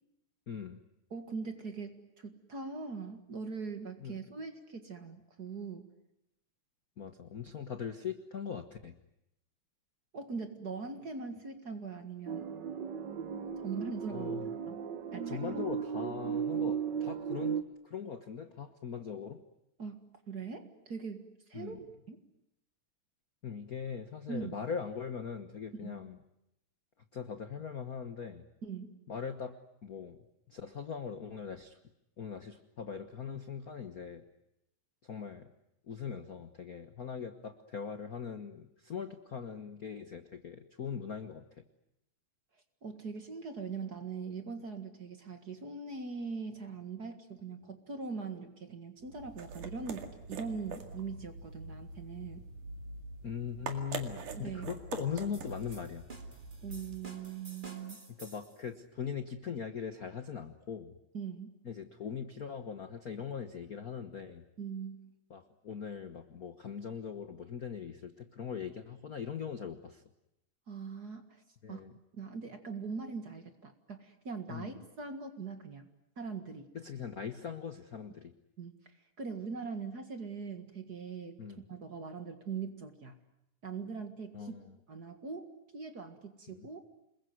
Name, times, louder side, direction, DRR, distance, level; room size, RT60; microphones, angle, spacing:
voice 1, 0.5-0.8 4.0-4.1 7.0-9.0 14.1-14.5 15.3-19.4 21.5-21.8 23.4-26.2 27.1-28.4 29.1-30.2 30.5-31.8 32.2-34.2 35.0-35.5 35.9-41.6 53.2-56.0 58.1-60.9 61.6-64.4 65.3-70.0 71.6-71.9 74.5-74.8 76.7-78.3 81.4-81.6 84.3-84.8 86.5-86.7, left 7 dB, 75° left, 8 dB, 0.8 m, -41 dB
voice 2, 1.1-5.9 10.1-12.5 13.6-14.3 14.7-14.8 15.1-15.7 19.8-22.2 24.3-24.7 25.7-25.9 28.6-29.0 42.8-52.4 54.3-54.7 56.6-58.0 61.1-61.5 64.6-65.1 70.7-71.4 71.7-71.8 72.1-75.9 76.2-76.7 78.6-81.4 81.7-83.2 83.6-84.6 84.9-86.8, right 5 dB, 35° right, 8 dB, 1.9 m, -41 dB
sound 1, 12.3-17.6, right 8 dB, 55° right, 1.2 m, -36 dB
sound 2, 49.0-57.2, right 4 dB, 75° right, 3.7 m, -44 dB
sound 3, 55.3-58.6, right 2 dB, 15° right, 2.3 m, -52 dB
28.5 x 21.5 x 9.4 m, 0.84 s
omnidirectional pair, 3.6 m